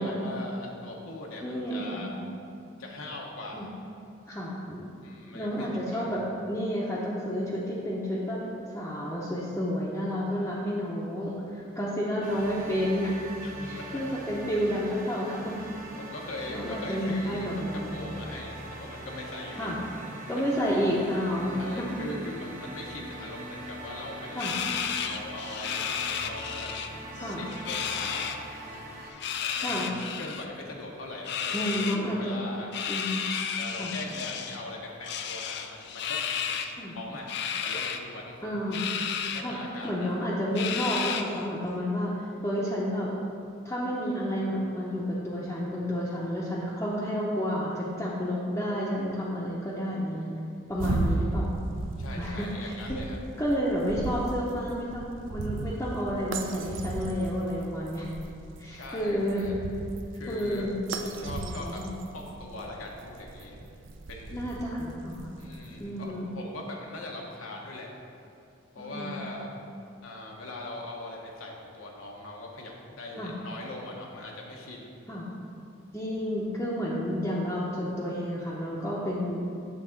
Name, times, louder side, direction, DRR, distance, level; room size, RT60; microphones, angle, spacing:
voice 1, 0.0-2.1 2.8-3.7 5.0-6.1 13.4-14.0 16.0-17.6 17.9-19.7 20.4-20.5 21.4-24.5 25.0-26.7 27.2-28.3 29.4-29.9 30.1-31.9 32.1-32.7 33.5-36.6 36.9-37.3 37.6-38.4 39.3-40.1 50.9-51.1 52.0-53.2 58.7-59.6 60.1-60.7 61.2-61.8 62.1-63.6 64.1-64.4 65.4-67.9 68.7-69.5 70.0-75.0, left 2 dB, 85° left, -1 dB, 0.9 m, -41 dB
voice 2, 1.4-2.3 3.5-3.7 4.3-4.9 5.3-6.2 6.5-8.4 8.7-13.2 13.6-15.6 16.5-18.0 19.6-19.8 20.3-22.0 24.3-24.5 27.2-27.5 29.6-29.9 31.5-32.4 32.9-33.2 33.8-33.9 36.8-37.0 38.4-38.8 39.4-39.6 39.8-43.1 43.6-50.3 50.7-51.5 52.2-53.0 53.4-58.1 58.6-59.5 60.3-61.9 64.3-65.4 65.8-66.3 68.8-69.3 73.2-73.3 75.1-75.3 75.9-79.4, equal, 15° left, -8 dB, 0.6 m, -30 dB
sound 1, 12.2-29.1, right 1 dB, 40° right, 0.8 m, -42 dB
sound 2, 24.4-26.9 27.2-28.4 29.1-30.5 31.2-32.0 32.7-34.6 35.0-36.7 37.3-38.0 38.7-39.4 39.8-39.9 40.6-41.4, left 8 dB, 55° left, 0.4 m, -32 dB
sound 3, 50.7-65.9, right 3 dB, 65° right, 0.5 m, -36 dB
7.4 x 3.6 x 5.8 m, 2.5 s
head